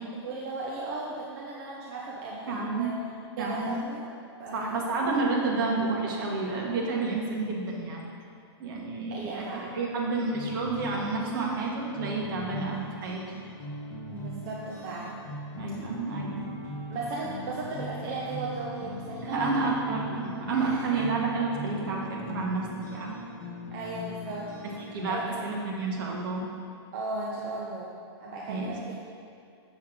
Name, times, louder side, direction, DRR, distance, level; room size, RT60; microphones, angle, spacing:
voice 1, 0.2-2.9 3.4-4.0 4.4-4.9 9.1-9.8 14.1-15.2 16.9-19.7 20.5-21.0 23.7-24.5 25.1-25.3 26.9-28.9, right 3 dB, 30° right, -4 dB, 0.8 m, -36 dB
voice 2, 2.5-3.0 3.4-3.8 4.5-8.0 8.6-13.2 15.6-16.5 19.2-23.2 24.6-26.5 28.5-28.7, right 3 dB, 50° right, -2 dB, 1.6 m, -30 dB
sound 1, 10.3-25.1, left 1 dB, 10° left, 1.7 m, -40 dB
7.7 x 7.1 x 3.8 m, 2.5 s
hypercardioid pair, 165°, 14 cm